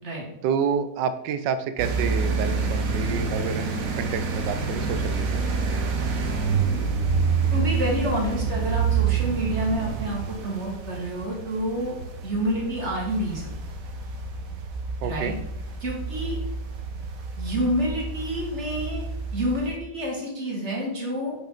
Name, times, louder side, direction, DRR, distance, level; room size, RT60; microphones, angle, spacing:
voice 1, 0.4-5.4 15.0-15.3, right 6 dB, 80° right, 11 dB, 1.3 m, -29 dB
sound 1, 1.8-19.8, right 5 dB, 55° right, 1.2 m, -28 dB
voice 2, 7.5-12.0 12.2-13.5 15.0-15.3 15.8-16.4 17.3-19.0 19.3-21.4, equal, 40° right, -2 dB, 2.4 m, -28 dB
8.5 x 5.9 x 4.0 m, 0.83 s
omnidirectional pair, 1.9 m